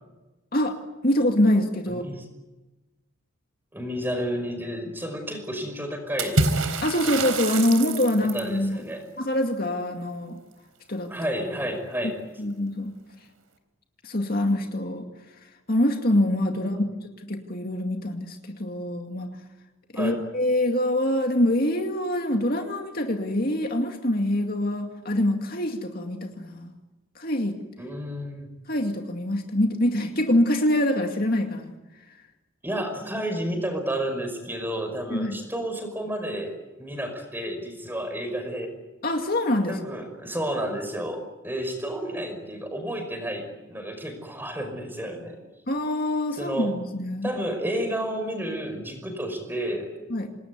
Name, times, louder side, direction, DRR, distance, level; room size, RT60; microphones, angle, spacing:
voice 1, 1.0-2.1 6.8-8.8 9.2-10.4 10.9-11.1 12.4-13.0 14.0-15.1 15.7-16.8 17.2-19.4 19.9-26.7 27.2-27.6 28.7-31.7 35.1-35.4 39.0-39.8 45.7-47.3 50.1-50.3, left 1 dB, 45° left, 4 dB, 2.2 m, -25 dB
voice 2, 1.9-2.3 3.7-6.4 8.3-9.1 11.1-12.2 16.6-16.7 19.9-20.2 27.8-28.5 32.6-38.7 39.7-45.4 46.4-46.8 47.2-50.0, equal, 10° right, 5 dB, 5.4 m, -31 dB
Water / Splash splatter, 6.2-8.6, right 3 dB, 80° right, 4.0 m, -26 dB
27.5 x 20.0 x 9.6 m, 1.1 s
head